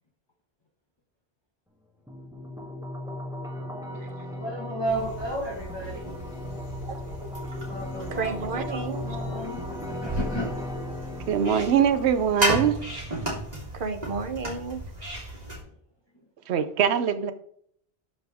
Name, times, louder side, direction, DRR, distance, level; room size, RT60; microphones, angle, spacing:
sound 1, 2.1-13.1, left 1 dB, 5° right, 1.1 m, -37 dB
voice 1, 4.3-6.2 7.7-8.3 8.7-10.6 15.4-15.6, right 1 dB, 25° left, 1.3 m, -33 dB
sound 2, 4.8-15.6, right 1 dB, 40° right, 3.2 m, -34 dB
voice 2, 8.1-9.2 13.7-14.8, right 4 dB, 55° right, 1.1 m, -32 dB
voice 3, 11.3-12.8 16.5-17.3, right 8 dB, 85° right, 0.9 m, -22 dB
12.0 x 5.2 x 3.5 m
omnidirectional pair, 1.1 m